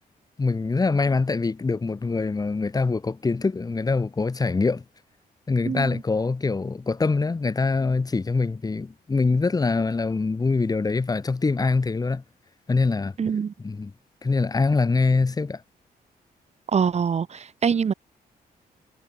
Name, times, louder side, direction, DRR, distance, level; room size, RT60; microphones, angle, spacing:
voice 1, 0.4-4.8 5.5-12.2 12.7-13.1 13.6-13.9 14.2-15.6, left 4 dB, 25° left, 3.5 m, -24 dB
voice 2, 5.6-6.0 13.2-13.5 16.7-17.9, right 6 dB, 45° right, 3.3 m, -24 dB
cardioid pair, 135°, 16 cm